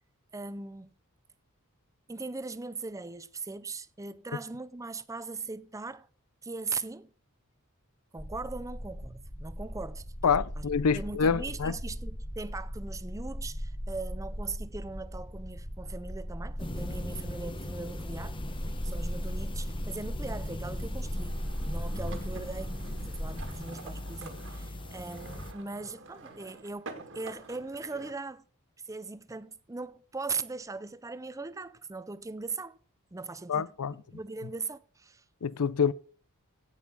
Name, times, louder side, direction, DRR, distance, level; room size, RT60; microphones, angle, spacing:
voice 1, 0.3-0.9 2.1-6.1 6.4-7.1 8.1-10.6 10.9-21.4 21.7-22.8 23.1-28.4 28.8-32.8 33.1-33.7 34.1-35.2, right 3 dB, 15° right, 0.5 m, -39 dB
sound 1, 8.2-23.5, equal, 40° left, 3.3 m, -38 dB
voice 2, 10.2-11.8 33.5-34.0 35.4-35.9, left 6 dB, 90° left, 0.6 m, -26 dB
sound 2, 16.6-25.5, left 1 dB, 25° left, 0.9 m, -40 dB
sound 3, 21.2-28.1, right 3 dB, 60° right, 1.7 m, -48 dB
16.5 x 5.6 x 6.0 m
head